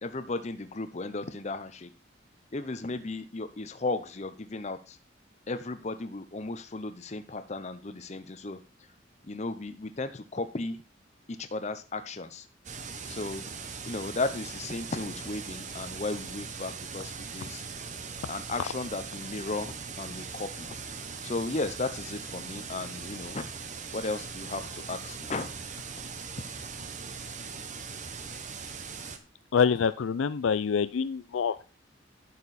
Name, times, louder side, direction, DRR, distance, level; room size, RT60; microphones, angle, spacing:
voice 1, 0.0-1.9 2.5-5.0 5.5-8.6 9.2-10.8 11.3-12.5 13.1-13.5 13.8-17.6 18.3-20.7 21.2-23.4 23.9-25.5, left 3 dB, 35° left, 10 dB, 0.7 m, -35 dB
sound 1, 12.6-29.2, right 5 dB, 40° right, 0.9 m, -40 dB
voice 2, 29.5-31.6, left 6 dB, 90° left, 14 dB, 0.4 m, -26 dB
11.0 x 6.8 x 4.2 m, 0.33 s
head